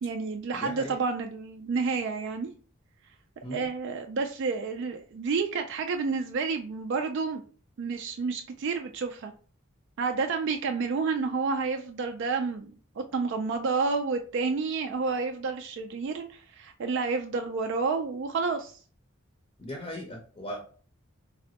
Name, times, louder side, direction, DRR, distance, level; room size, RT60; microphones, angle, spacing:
voice 1, 0.0-2.5 3.5-7.4 7.8-9.3 10.0-18.8, right 4 dB, 60° right, 5 dB, 0.3 m, -30 dB
voice 2, 0.5-1.0 3.4-3.6 19.6-20.7, equal, 25° left, 0 dB, 0.6 m, -38 dB
4.0 x 2.1 x 2.8 m, 0.41 s
head